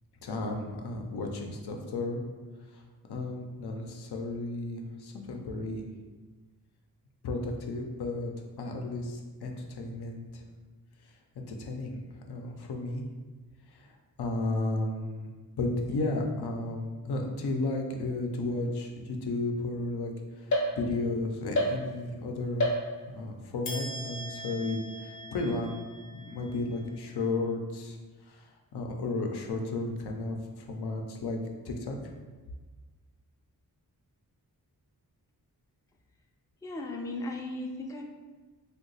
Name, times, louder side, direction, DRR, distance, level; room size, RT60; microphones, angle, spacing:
voice 1, 0.2-2.2 3.1-5.9 7.2-8.3 8.6-10.4 11.4-12.0 12.3-13.0 13.7-13.9 14.2-15.3 15.6-22.7 23.1-25.8 26.1-28.0 28.3-31.4 31.7-32.1, left 2 dB, 85° left, 2 dB, 0.5 m, -33 dB
sound 1, 20.5-21.2 21.5-22.2 22.6-23.3 23.6-27.1, equal, 50° left, 0.7 m, -34 dB
voice 2, 36.6-38.0, left 2 dB, 10° left, 1 dB, 0.3 m, -36 dB
2.8 x 2.2 x 3.9 m, 1.3 s
wide cardioid pair, 80°, 38 cm